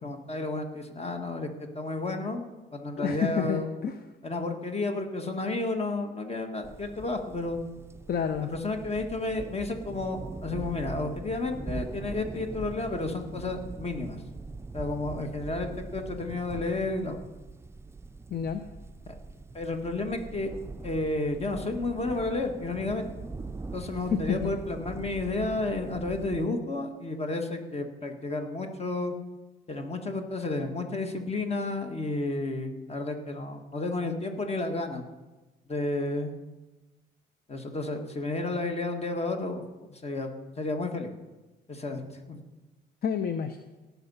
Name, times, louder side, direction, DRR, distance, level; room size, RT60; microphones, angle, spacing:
voice 1, 0.0-3.7 4.2-7.6 8.4-14.2 14.7-17.2 19.1-19.2 19.5-20.5 20.8-23.1 23.7-29.1 29.7-35.0 35.7-36.3 37.5-39.6 39.9-40.3 40.6-41.1 41.7-42.4, left 2 dB, 30° left, 5 dB, 1.6 m, -32 dB
voice 2, 3.0-4.0 8.1-8.5 18.3-18.6 24.1-24.5 43.0-43.6, left 7 dB, 50° left, 9 dB, 0.7 m, -29 dB
sound 1, 6.6-26.5, right 3 dB, 15° right, 0.5 m, -42 dB
17.5 x 6.0 x 5.5 m, 1.1 s
cardioid pair, 90°, 20 cm